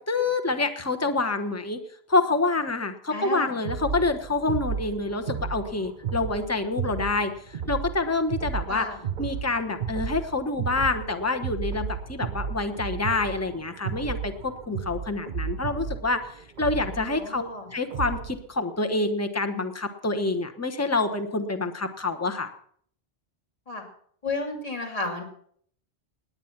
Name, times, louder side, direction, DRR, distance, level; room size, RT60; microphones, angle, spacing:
voice 1, 0.1-1.8 2.1-8.9 9.2-22.5, left 3 dB, 15° left, 7 dB, 1.1 m, -27 dB
voice 2, 3.1-3.5 8.7-9.0 17.2-17.7 23.7-23.8 24.2-25.2, left 3 dB, 35° left, 1 dB, 2.9 m, -32 dB
sound 1, 3.6-18.4, right 7 dB, 50° right, 0.9 m, -34 dB
18.5 x 9.7 x 5.9 m, 0.62 s
omnidirectional pair, 1.1 m